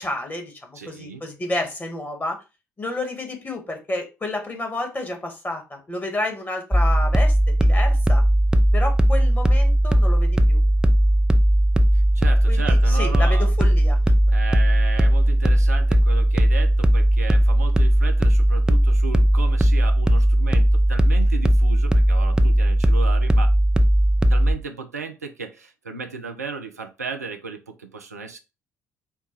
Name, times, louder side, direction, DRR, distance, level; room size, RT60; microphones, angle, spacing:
voice 1, 0.0-2.4 2.8-8.2 8.7-10.6 12.5-14.0 14.3-14.4, left 2 dB, 20° left, 1.5 m, -30 dB
voice 2, 0.8-1.2 11.9-13.5 14.3-23.5 24.3-28.4, right 5 dB, 85° right, 0.5 m, -35 dB
sound 1, 6.7-24.6, right 1 dB, 10° right, 0.5 m, -17 dB
4.7 x 2.3 x 4.4 m
figure-of-eight pair, 50°, 8 cm